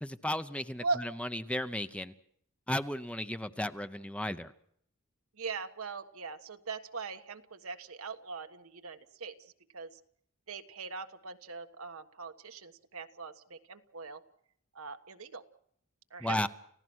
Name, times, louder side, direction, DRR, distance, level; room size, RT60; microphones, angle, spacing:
voice 1, 0.0-2.1 2.7-4.5 16.2-16.5, left 1 dB, 5° left, 11 dB, 0.8 m, -34 dB
voice 2, 5.4-9.3 9.7-10.0 10.5-14.2 14.7-15.4 16.1-16.5, right 4 dB, 80° right, 7 dB, 1.5 m, -40 dB
29.5 x 16.0 x 6.3 m, 0.67 s
head